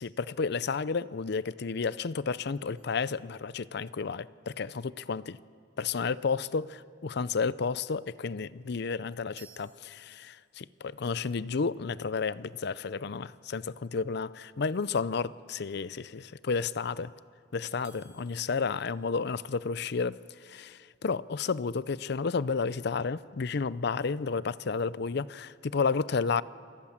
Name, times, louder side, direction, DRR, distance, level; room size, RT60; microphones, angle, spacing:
voice 1, 0.0-5.4 5.8-17.1 17.5-26.4, left 5 dB, 60° left, 0.6 m, -32 dB
Music Triangle, 2.8-4.1 9.4-10.8 17.8-20.0, right 6 dB, 55° right, 2.6 m, -60 dB
28.5 x 21.5 x 7.3 m
head